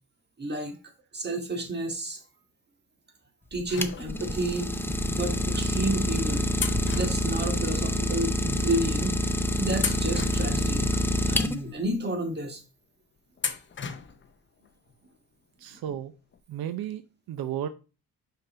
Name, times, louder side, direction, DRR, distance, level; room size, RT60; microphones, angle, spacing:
voice 1, 0.4-0.8 1.1-2.2 3.5-4.7 5.0-6.5 6.9-9.2 9.5-11.0 11.3-12.6, right 1 dB, 30° right, 4 dB, 1.7 m, -31 dB
Idling, 3.5-11.9, equal, 5° left, 0.5 m, -27 dB
sound 1, 3.7-4.5 5.3-5.5 6.6-8.0 8.3-8.4 9.1-9.3 9.8-11.1 11.6-11.7 13.4-14.3 14.6-14.7 15.9-16.0 16.3-16.4, left 6 dB, 30° left, 0.8 m, -36 dB
voice 2, 15.6-16.1 16.5-17.0 17.3-17.7, right 10 dB, 80° right, 11 dB, 0.7 m, -33 dB
5.7 x 5.5 x 4.2 m, 0.32 s
cardioid pair, 130°, 36 cm